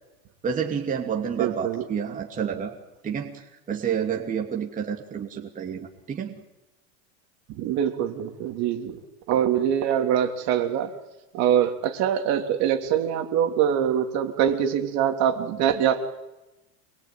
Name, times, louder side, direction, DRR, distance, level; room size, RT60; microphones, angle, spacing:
voice 1, 0.4-2.7 3.0-6.3, right 7 dB, 20° right, 1 dB, 2.7 m, -29 dB
voice 2, 1.4-1.8 7.5-9.0 9.3-10.9 11.3-16.0, right 9 dB, 45° right, 5 dB, 3.4 m, -24 dB
27.0 x 22.0 x 9.5 m, 0.98 s
supercardioid pair, 155°, 36 cm